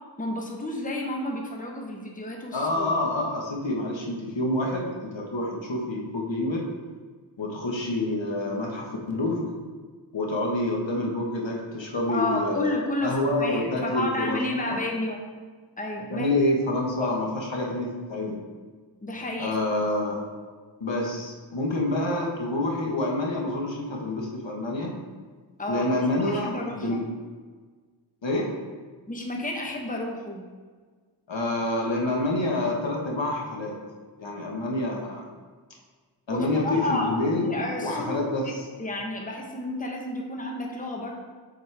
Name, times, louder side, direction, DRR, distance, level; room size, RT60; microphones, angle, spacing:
voice 1, 0.2-3.0 12.1-15.2 15.8-16.3 17.0-17.1 19.0-19.6 25.6-26.0 26.2-27.0 29.1-30.4 36.3-37.1 37.4-38.2 38.4-38.5 38.8-41.1, left 1 dB, 20° left, 0 dB, 0.9 m, -31 dB
voice 2, 2.5-6.6 7.4-9.5 10.1-12.8 13.0-14.6 16.1-18.4 19.4-20.2 20.8-25.0 25.7-27.0 28.2-28.5 31.3-33.8 34.2-35.2 36.3-37.5 37.8-38.6, left 1 dB, 75° left, -1 dB, 1.2 m, -27 dB
7.7 x 4.2 x 3.4 m, 1.5 s
wide cardioid pair, 55°, 45 cm